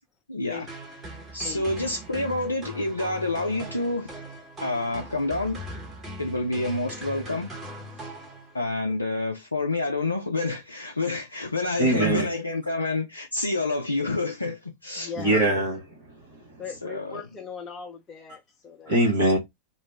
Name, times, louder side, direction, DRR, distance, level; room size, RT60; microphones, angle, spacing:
voice 1, 0.3-0.7 1.3-4.1 4.6-5.6 6.2-7.5 8.5-15.4 16.8-17.2, left 2 dB, 80° left, 0.3 m, -28 dB
sound 1, 0.7-8.8, equal, 20° right, 1.0 m, -40 dB
voice 2, 11.8-12.3 15.2-16.5 18.9-19.4, right 2 dB, 60° right, 1.0 m, -23 dB
voice 3, 15.0-15.4 16.6-18.9, left 6 dB, 25° left, 0.6 m, -39 dB
2.5 x 2.0 x 3.1 m
figure-of-eight pair, 90°, 0 cm